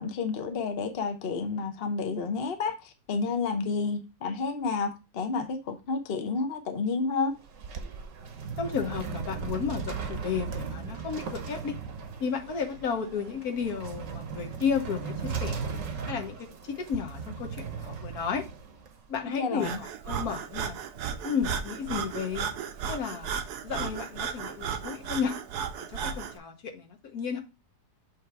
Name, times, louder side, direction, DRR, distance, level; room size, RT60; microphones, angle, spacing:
voice 1, 0.0-7.3 19.3-19.8, left 4 dB, 45° left, 0.9 m, -30 dB
sound 1, 7.3-19.2, right 5 dB, 55° right, 1.1 m, -37 dB
voice 2, 8.6-11.8 12.2-15.6 16.1-18.4 19.1-20.7 21.2-22.5 22.9-23.3 23.6-25.4 25.9-27.4, left 6 dB, 65° left, 1.4 m, -33 dB
Breathing, 19.6-26.4, right 7 dB, 75° right, 1.2 m, -35 dB
7.5 x 3.2 x 4.5 m
omnidirectional pair, 1.7 m